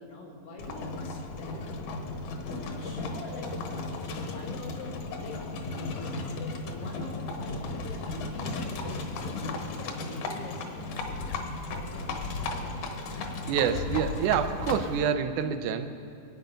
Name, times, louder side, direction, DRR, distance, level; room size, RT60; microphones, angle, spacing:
voice 1, 0.0-1.9 2.4-5.4 5.8-11.4 11.7-12.6, left 2 dB, 85° left, -1 dB, 4.3 m, -45 dB
Livestock farm animals working animals, 0.6-15.0, left 3 dB, 65° left, 2.4 m, -35 dB
voice 2, 13.5-15.9, right 8 dB, 75° right, 8 dB, 2.1 m, -27 dB
24.0 x 8.9 x 5.2 m, 2.7 s
omnidirectional pair, 4.0 m